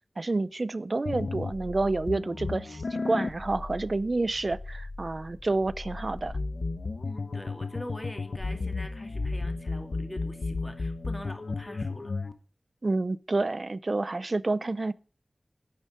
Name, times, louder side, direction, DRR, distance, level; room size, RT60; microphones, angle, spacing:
voice 1, 0.2-6.3 12.8-14.9, right 2 dB, 55° right, 0.7 m, -29 dB
sound 1, 1.1-12.3, left 3 dB, 80° left, 1.1 m, -34 dB
voice 2, 7.0-12.1, left 1 dB, 15° left, 2.4 m, -43 dB
10.5 x 9.1 x 7.9 m
wide cardioid pair, 50°, 0 cm